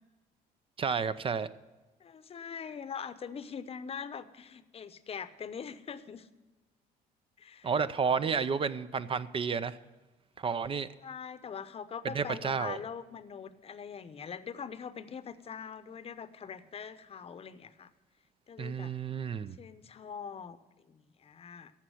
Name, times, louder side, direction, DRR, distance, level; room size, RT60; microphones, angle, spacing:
voice 1, 0.8-1.5 7.6-9.8 10.4-10.9 12.1-12.8 18.6-19.6, right 6 dB, 30° right, 14 dB, 0.6 m, -31 dB
voice 2, 2.0-6.3 7.4-7.7 8.2-8.4 11.0-17.9 18.5-18.9 19.6-21.7, left 7 dB, 35° left, 12 dB, 0.8 m, -43 dB
14.5 x 5.8 x 7.8 m, 1.2 s
cardioid pair, 110°, 17 cm